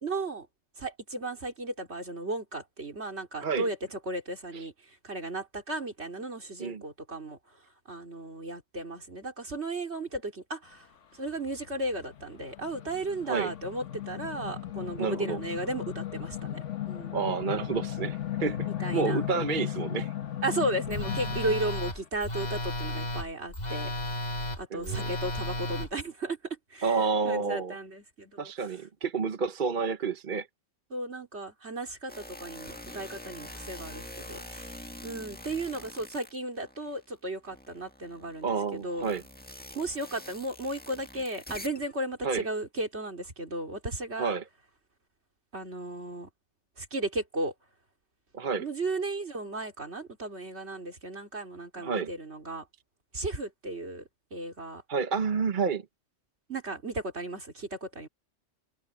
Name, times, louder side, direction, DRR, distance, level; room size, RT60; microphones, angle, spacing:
voice 1, 0.0-0.5 0.8-7.4 7.9-10.9 11.1-16.6 16.9-17.2 18.6-19.2 20.4-24.3 24.6-26.4 26.7-28.7 30.9-39.1 39.7-44.3 45.5-46.3 46.8-47.5 48.6-52.6 53.1-54.0 54.3-54.8 56.5-58.1, right 2 dB, 65° right, 3.9 m, -35 dB
sound 1, 11.3-21.7, left 11 dB, 90° left, 1.4 m, -36 dB
voice 2, 15.0-15.4 17.1-18.7 18.9-20.1 24.7-25.1 26.8-27.7 28.4-30.5 38.4-39.2 42.2-42.4 44.2-44.4 48.3-48.6 51.8-52.1 54.9-55.8, right 5 dB, 45° right, 1.1 m, -29 dB
Telephone, 20.9-25.9, left 1 dB, 35° left, 2.2 m, -33 dB
sound 2, 32.1-37.1 37.4-41.9, left 1 dB, 10° left, 1.6 m, -45 dB
omnidirectional pair, 1.2 m